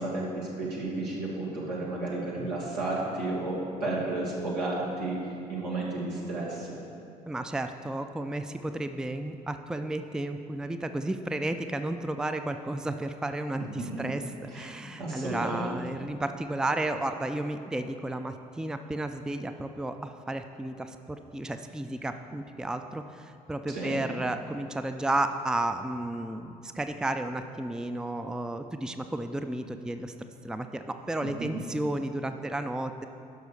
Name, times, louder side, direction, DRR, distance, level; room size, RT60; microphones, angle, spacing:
voice 1, 0.0-6.8 13.9-14.0 14.5-14.7 15.0-15.8 23.7-24.0, right 2 dB, 85° right, -5 dB, 1.9 m, -32 dB
voice 2, 7.3-30.1 30.4-33.1, right 1 dB, 5° right, 8 dB, 0.5 m, -33 dB
11.0 x 6.2 x 4.8 m, 2.7 s
figure-of-eight pair, 50°, 20 cm